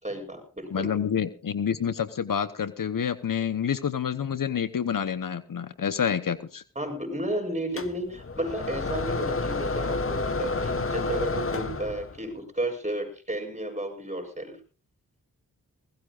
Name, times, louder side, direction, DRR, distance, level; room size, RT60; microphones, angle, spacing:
voice 1, 0.0-0.9 6.7-14.6, right 1 dB, 20° right, 5 dB, 7.9 m, -33 dB
voice 2, 0.7-6.6, left 8 dB, 65° left, 13 dB, 1.0 m, -28 dB
sound 1, 7.8-12.3, left 3 dB, 40° left, 1.4 m, -30 dB
20.5 x 18.0 x 2.5 m, 0.34 s
cardioid pair, 40°, 35 cm